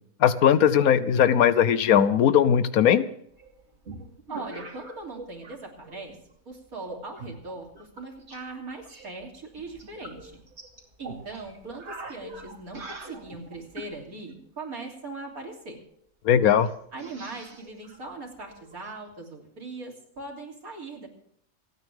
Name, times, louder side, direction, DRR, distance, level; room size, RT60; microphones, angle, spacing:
voice 1, 0.2-3.0 16.2-16.7, left 9 dB, 85° left, 15 dB, 1.3 m, -19 dB
sound 1, 3.4-5.6 5.8-6.3 6.9-8.4 8.7-14.0 15.6-15.7 15.9-16.0 16.4-18.9, right 3 dB, 50° right, 2.7 m, -44 dB
voice 2, 4.3-6.2 6.5-7.7 8.0-10.3 11.0-15.8 16.9-21.1, right 3 dB, 85° right, -1 dB, 3.7 m, -40 dB
28.0 x 9.5 x 3.6 m, 0.66 s
omnidirectional pair, 1.5 m